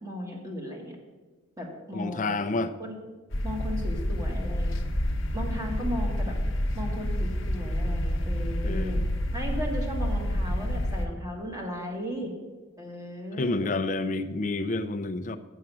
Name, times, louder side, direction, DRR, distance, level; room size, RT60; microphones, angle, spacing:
voice 1, 0.0-0.9 1.6-2.4 2.8-2.9 3.4-4.7 5.3-6.3 6.7-9.0 9.3-12.3 12.8-13.8, equal, 15° right, 0 dB, 1.6 m, -36 dB
voice 2, 1.9-2.7 8.6-9.1 13.4-15.4, left 2 dB, 40° left, 9 dB, 0.5 m, -29 dB
sound 1, 3.3-11.1, equal, 75° left, 0.9 m, -28 dB
7.9 x 7.2 x 6.1 m, 1.3 s
head